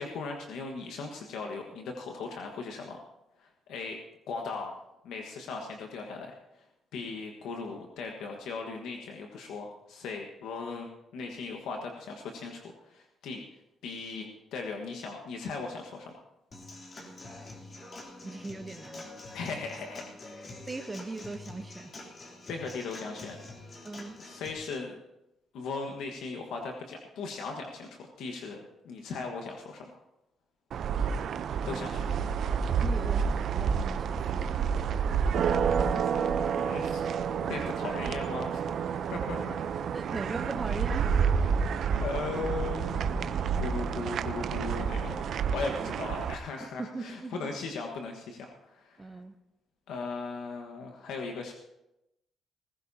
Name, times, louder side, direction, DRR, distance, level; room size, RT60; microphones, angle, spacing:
voice 1, 0.0-3.0 3.4-4.0 4.3-4.8 5.0-6.4 6.9-10.9 11.1-13.4 13.8-16.2 19.3-20.5 22.5-23.4 24.2-25.0 25.5-28.6 28.8-30.0 31.6-32.1 35.8-37.0 37.5-38.8 39.1-39.6 42.0-45.2 45.5-49.2 49.9-51.5, left 4 dB, 85° left, 2 dB, 1.5 m, -38 dB
Human voice / Acoustic guitar / Drum, 16.5-24.5, left 2 dB, 40° left, 3.2 m, -46 dB
voice 2, 18.2-19.1 20.7-21.9 23.8-24.2 31.7-31.9 32.8-34.6 35.9-36.3 39.9-41.3 45.8-45.9 46.6-47.5 49.0-49.3, right 2 dB, 20° right, 5 dB, 0.9 m, -40 dB
sound 1, 30.7-46.3, right 6 dB, 65° right, 0.7 m, -29 dB
19.5 x 16.0 x 2.9 m, 0.89 s
cardioid pair, 90°, 0 cm